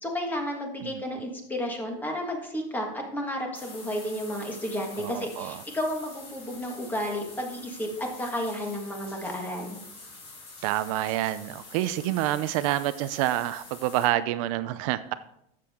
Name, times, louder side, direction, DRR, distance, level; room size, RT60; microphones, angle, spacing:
voice 1, 0.0-9.7, equal, 10° left, 2 dB, 1.6 m, -32 dB
sound 1, 3.5-14.0, left 3 dB, 35° left, 4.3 m, -46 dB
voice 2, 5.0-5.6 10.6-15.1, right 14 dB, 60° right, 13 dB, 0.5 m, -28 dB
13.0 x 7.5 x 3.6 m, 0.77 s
cardioid pair, 170°, 19 cm